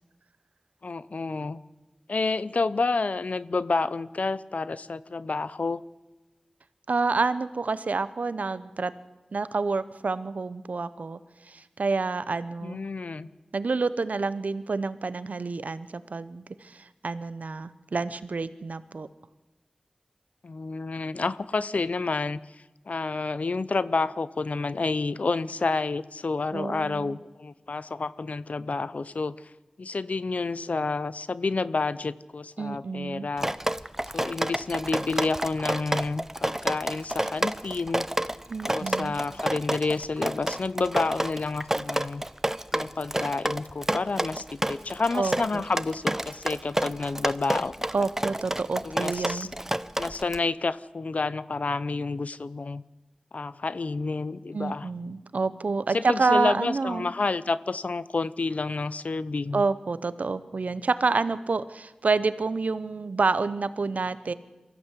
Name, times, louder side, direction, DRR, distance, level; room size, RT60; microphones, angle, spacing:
voice 1, 0.8-1.6 2.1-5.8 12.6-13.3 20.4-22.4 22.9-29.4 29.8-33.5 34.1-38.1 38.6-42.2 42.7-48.1 48.8-49.5 50.0-52.8 53.3-54.9 55.9-59.6, left 3 dB, 70° left, 17 dB, 0.6 m, -29 dB
voice 2, 6.9-8.9 9.3-11.2 11.5-12.8 13.5-19.1 26.5-27.2 32.6-33.3 38.5-39.1 45.1-45.6 47.9-49.5 54.5-57.1 59.5-64.3, right 4 dB, 85° right, 15 dB, 0.8 m, -28 dB
Drip, 33.4-50.4, right 1 dB, 15° right, 0.6 m, -29 dB
23.5 x 14.5 x 8.3 m, 1.1 s
wide cardioid pair, 70°, 2 cm